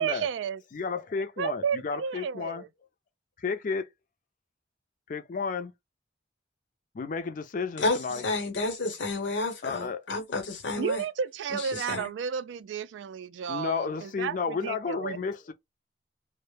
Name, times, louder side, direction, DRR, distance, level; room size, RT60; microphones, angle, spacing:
voice 1, 0.0-0.6 1.4-2.7 10.8-15.2, right 7 dB, 85° right, 0.3 m, -32 dB
voice 2, 0.7-2.6 3.4-3.9 5.1-5.7 6.9-8.2 9.6-10.0 13.5-15.5, left 5 dB, 45° left, 0.4 m, -32 dB
voice 3, 8.2-11.0 11.5-12.0, left 2 dB, 80° left, 0.8 m, -30 dB
2.1 x 2.0 x 3.1 m
head